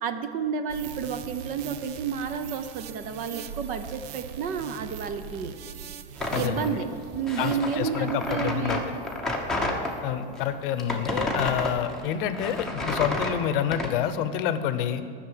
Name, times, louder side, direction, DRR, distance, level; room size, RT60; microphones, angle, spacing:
voice 1, 0.0-5.6 6.3-8.8 11.6-11.7, right 7 dB, 30° right, 9 dB, 0.5 m, -31 dB
sound 1, 0.7-9.4 9.9-10.0, right 8 dB, 90° right, 0.8 m, -42 dB
sound 2, 6.2-9.9 10.4-13.9, left 1 dB, ahead, 1.0 m, -30 dB
voice 2, 6.3-6.8 7.4-8.8 10.0-15.0, left 9 dB, 60° left, 12 dB, 0.8 m, -28 dB
11.0 x 6.5 x 9.1 m, 2.2 s
supercardioid pair, 165°, 30 cm